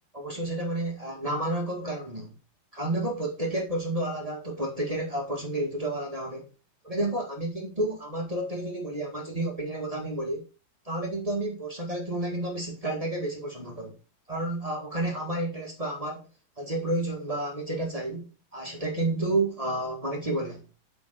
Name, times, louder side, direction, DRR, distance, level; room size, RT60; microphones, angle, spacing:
voice 1, 0.1-2.3 2.7-6.4 6.8-10.4 10.8-14.0 14.3-16.2 16.6-18.3 18.5-20.6, right 1 dB, 30° right, 0.6 m, -30 dB
8.4 x 5.3 x 6.6 m
omnidirectional pair, 4.2 m